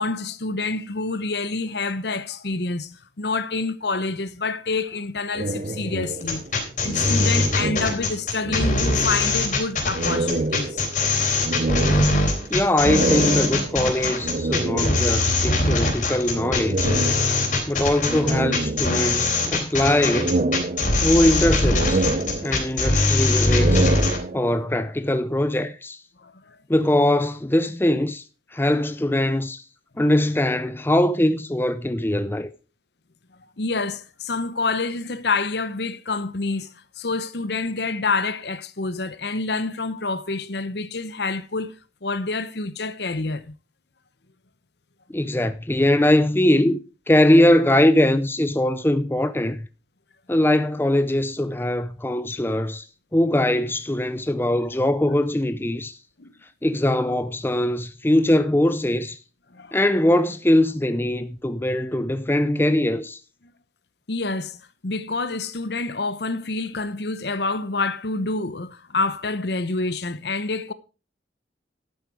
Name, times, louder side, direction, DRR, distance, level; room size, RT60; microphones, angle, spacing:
voice 1, 0.0-6.4 6.8-10.8 26.2-26.3 33.6-36.7 37.0-41.7 42.0-43.5 56.2-56.3 59.5-59.8 64.1-64.6 64.8-70.7, left 3 dB, 65° left, 0.9 m, -27 dB
sound 1, 5.3-8.2 8.4-9.5 9.9-15.4 16.3-17.6 18.0-19.4 19.8-21.3 21.6-22.9 23.3-24.7, right 2 dB, 40° right, 0.7 m, -27 dB
sound 2, 6.2-24.2, left 2 dB, 45° left, 3.7 m, -22 dB
voice 2, 12.5-17.0 17.7-20.3 20.9-22.1 22.4-23.9 24.3-26.0 26.7-28.2 28.5-29.6 30.0-32.5 45.1-49.7 50.3-52.9 53.1-56.0 56.6-59.2 59.7-63.2, left 1 dB, 10° left, 0.5 m, -21 dB
11.5 x 8.6 x 4.8 m
head